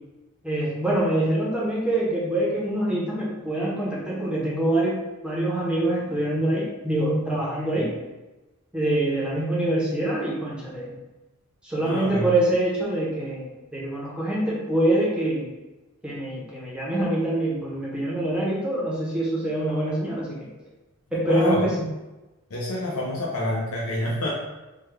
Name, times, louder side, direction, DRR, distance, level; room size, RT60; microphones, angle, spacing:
voice 1, 0.4-8.0 8.7-11.0 11.6-15.5 16.0-20.5 21.1-21.9, right 1 dB, 5° right, -6 dB, 0.7 m, -25 dB
voice 2, 11.8-12.3 21.3-21.7 22.5-24.3, left 1 dB, 90° left, -4 dB, 0.6 m, -28 dB
3.4 x 2.2 x 3.2 m, 1.1 s
head